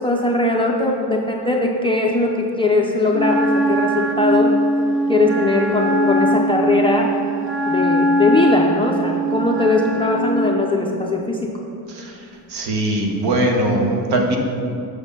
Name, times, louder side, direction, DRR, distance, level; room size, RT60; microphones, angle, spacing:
voice 1, 0.0-4.6 5.1-7.1 7.7-11.5, left 2 dB, 15° left, -2 dB, 0.3 m, -20 dB
Wind instrument woodwind instrument, 3.1-10.4, right 1 dB, 30° right, 0.7 m, -20 dB
voice 2, 12.5-14.4, right 1 dB, 65° right, 1 dB, 1.4 m, -20 dB
8.0 x 6.4 x 5.4 m, 2.5 s
cardioid pair, 165°, 42 cm